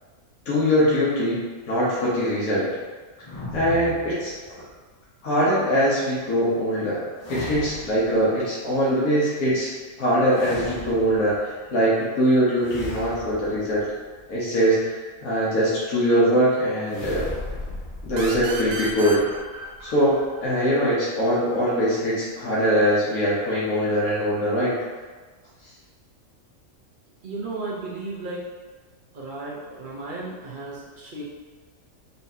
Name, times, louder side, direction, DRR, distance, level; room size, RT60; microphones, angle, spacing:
voice 1, 0.5-2.7 3.5-4.3 5.2-9.7 10.0-11.4 11.7-13.9 14.3-17.3 18.0-19.2 19.8-24.7, equal, 85° left, -8 dB, 1.5 m, -22 dB
sound 1, 3.2-4.7 7.2-8.2 10.3-11.5 12.6-14.4 16.9-20.4, left 2 dB, 45° left, 0.4 m, -37 dB
sound 2, 18.2-21.6, right 3 dB, 75° right, 0.9 m, -36 dB
voice 2, 27.2-28.4 29.1-31.2, right 3 dB, 45° right, -5 dB, 0.8 m, -34 dB
4.1 x 3.4 x 2.7 m, 1.4 s
omnidirectional pair, 1.5 m